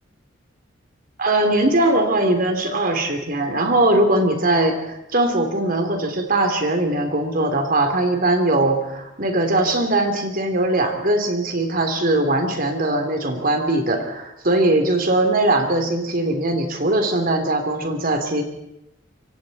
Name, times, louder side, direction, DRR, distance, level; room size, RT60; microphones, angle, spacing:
voice 1, 1.2-18.4, right 2 dB, 45° right, 5 dB, 3.2 m, -20 dB
26.5 x 23.5 x 4.3 m, 0.84 s
head